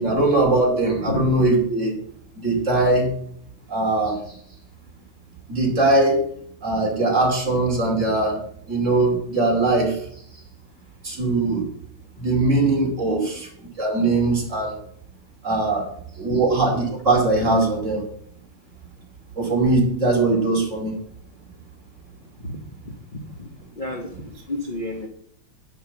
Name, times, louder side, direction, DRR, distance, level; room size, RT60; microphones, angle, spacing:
voice 1, 0.0-2.0 2.4-3.1 3.7-4.2 5.5-6.2 6.6-8.4 8.7-10.0 11.0-11.7 12.2-13.5 13.8-14.8 15.4-15.9 16.2-18.0 19.4-20.9, right 2 dB, 35° right, 0 dB, 2.9 m, -20 dB
voice 2, 22.8-23.5 23.8-25.1, left 2 dB, 30° left, 2 dB, 1.0 m, -31 dB
10.0 x 5.9 x 7.2 m, 0.65 s
omnidirectional pair, 2.3 m